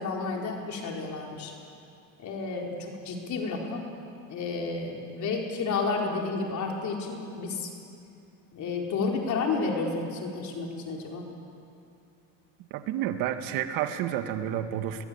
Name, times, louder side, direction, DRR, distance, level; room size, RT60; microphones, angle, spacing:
voice 1, 0.0-1.5 2.2-3.8 4.3-7.7 8.5-11.3, left 4 dB, 50° left, 0 dB, 4.6 m, -31 dB
voice 2, 12.7-15.0, right 11 dB, 70° right, 8 dB, 1.9 m, -30 dB
23.0 x 20.0 x 8.7 m, 2.6 s
supercardioid pair, 105°, 36 cm